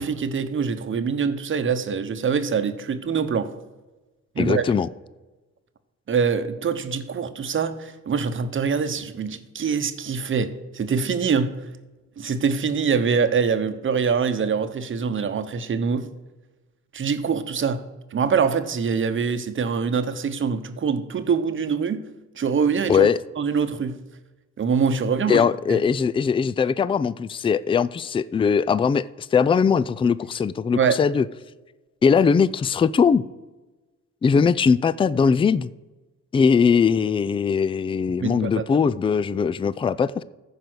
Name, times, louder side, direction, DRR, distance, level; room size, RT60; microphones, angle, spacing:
voice 1, 0.0-3.5 4.3-4.6 6.1-11.5 12.2-16.1 16.9-17.8 18.1-22.0 22.4-23.1 23.4-24.0 24.6-25.4 25.7-25.8 30.7-31.0 38.2-38.6, right 6 dB, 40° right, 10 dB, 1.0 m, -24 dB
voice 2, 4.4-4.9 22.9-23.2 25.3-31.3 32.0-33.2 34.2-35.7 36.3-40.2, left 6 dB, 20° left, 17 dB, 0.3 m, -20 dB
14.0 x 5.2 x 6.2 m, 1.2 s
cardioid pair, 90°, 30 cm